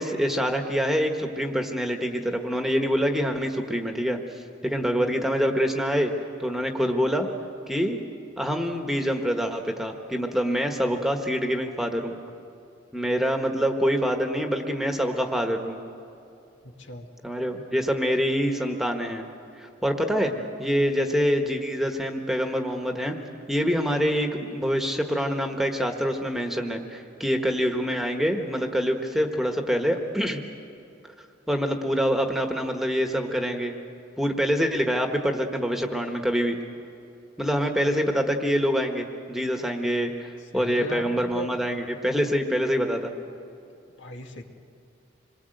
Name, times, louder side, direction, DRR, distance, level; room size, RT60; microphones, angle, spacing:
voice 1, 0.0-4.2 4.6-6.1 6.4-7.3 7.7-8.0 8.4-12.1 12.9-15.8 17.2-19.2 19.6-23.1 23.5-30.4 31.5-33.8 34.2-36.6 37.4-43.1, equal, ahead, 4 dB, 1.3 m, -25 dB
voice 2, 40.5-41.5 44.0-44.4, left 1 dB, 75° left, 3 dB, 2.1 m, -37 dB
27.0 x 22.0 x 7.9 m, 2.7 s
head